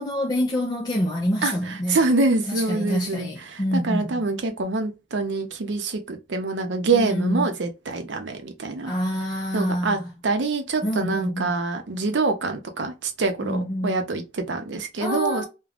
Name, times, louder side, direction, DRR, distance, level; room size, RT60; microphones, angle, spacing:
voice 1, 0.0-2.0 2.5-4.3 6.9-7.5 8.8-10.1 10.8-11.5 13.4-14.0 15.0-15.4, equal, 25° left, 0.4 m, -26 dB
voice 2, 1.4-8.9 9.5-15.4, right 3 dB, 80° right, 0.6 m, -25 dB
2.4 x 2.1 x 3.2 m
head